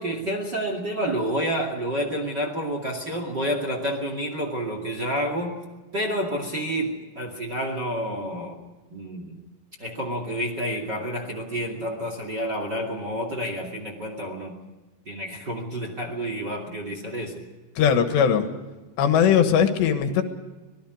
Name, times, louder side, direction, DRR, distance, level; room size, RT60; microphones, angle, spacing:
voice 1, 0.0-5.6 5.9-8.6 8.9-9.4 9.8-14.6 15.1-17.3, equal, 30° right, 2 dB, 2.2 m, -29 dB
voice 2, 17.8-18.5 19.0-20.2, left 8 dB, 75° left, 7 dB, 3.7 m, -19 dB
25.5 x 19.0 x 6.4 m, 1.2 s
omnidirectional pair, 5.2 m